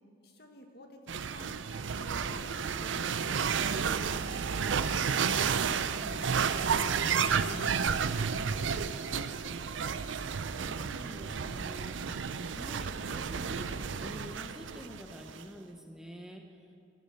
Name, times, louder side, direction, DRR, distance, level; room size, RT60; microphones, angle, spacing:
voice 1, 0.2-3.4 3.7-5.0 6.2-9.2, left 1 dB, 55° left, 3 dB, 1.7 m, -52 dB
sound 1, 1.1-15.4, right 6 dB, 85° right, 0.5 m, -31 dB
voice 2, 10.4-16.6, equal, 5° right, 2 dB, 0.8 m, -47 dB
15.0 x 13.5 x 6.8 m, 2.7 s
head